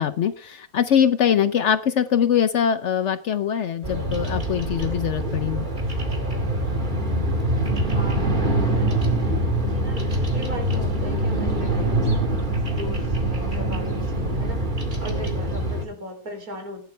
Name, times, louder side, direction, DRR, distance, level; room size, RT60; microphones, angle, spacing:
voice 1, 0.0-5.7, left 8 dB, 60° left, 12 dB, 0.9 m, -22 dB
Bird vocalization bird call bird song, 3.8-15.8, right 1 dB, 30° right, 2.3 m, -24 dB
voice 2, 7.2-14.7 15.0-16.8, equal, 75° right, 3 dB, 3.9 m, -38 dB
16.0 x 10.5 x 3.3 m, 0.39 s
omnidirectional pair, 1.6 m